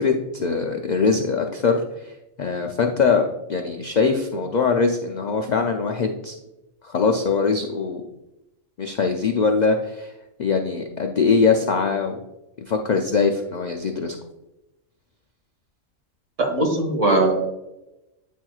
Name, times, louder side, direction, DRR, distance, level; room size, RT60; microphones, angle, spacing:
voice 1, 0.0-6.4 6.8-8.0 8.8-10.1 10.4-12.2 12.7-14.2, left 5 dB, 70° left, 3 dB, 0.4 m, -22 dB
voice 2, 16.4-17.3, right 2 dB, 70° right, 1 dB, 1.8 m, -20 dB
9.2 x 4.4 x 2.3 m, 0.94 s
omnidirectional pair, 1.3 m